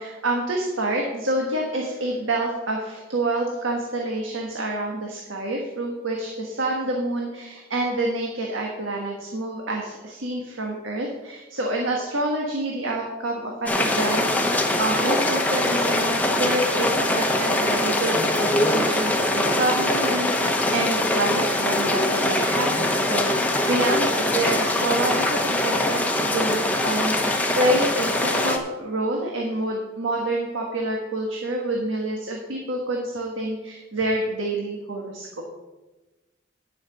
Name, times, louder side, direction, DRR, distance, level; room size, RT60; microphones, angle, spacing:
voice 1, 0.0-14.3 14.8-35.4, right 1 dB, 85° right, 0 dB, 1.5 m, -27 dB
sound 1, 13.7-28.6, left 1 dB, 10° left, 0.9 m, -23 dB
10.5 x 5.9 x 7.0 m, 1.1 s
head